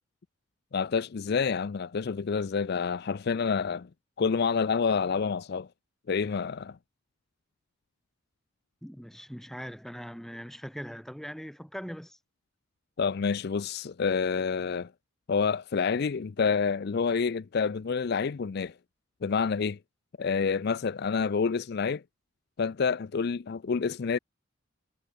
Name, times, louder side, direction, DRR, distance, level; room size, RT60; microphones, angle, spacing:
voice 1, 0.7-3.9 4.2-5.7 6.1-6.8 13.0-14.9 15.3-18.7 19.2-19.8 20.2-22.0 22.6-24.2, left 5 dB, 50° left, 0.4 m, -28 dB
voice 2, 8.8-12.2, equal, ahead, 3.1 m, -41 dB
head